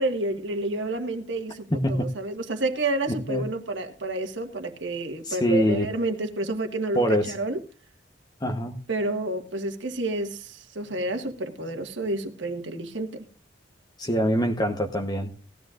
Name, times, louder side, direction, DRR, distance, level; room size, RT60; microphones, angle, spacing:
voice 1, 0.0-7.6 8.9-13.2, right 2 dB, 75° right, 1.7 m, -29 dB
voice 2, 1.7-2.1 3.3-3.4 5.2-5.9 6.9-7.3 8.4-8.8 14.0-15.3, equal, 25° left, 1.0 m, -24 dB
18.0 x 13.5 x 2.5 m
head